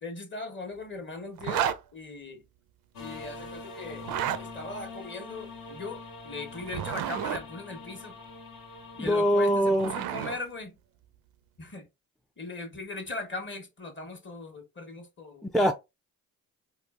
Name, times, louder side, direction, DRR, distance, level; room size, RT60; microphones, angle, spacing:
voice 1, 0.0-2.4 3.0-4.1 4.4-8.2 8.9-10.8 11.6-11.8 12.4-15.5, left 3 dB, 35° left, 1.1 m, -39 dB
Zipper (clothing), 1.4-1.8 3.9-4.4 6.5-7.4 9.3-10.4, right 10 dB, 80° right, 0.5 m, -31 dB
sound 1, 2.9-9.6, left 3 dB, 70° left, 1.3 m, -44 dB
voice 2, 9.0-9.9 15.4-15.7, equal, ahead, 0.3 m, -23 dB
3.6 x 2.4 x 2.4 m
supercardioid pair, 65°, 34 cm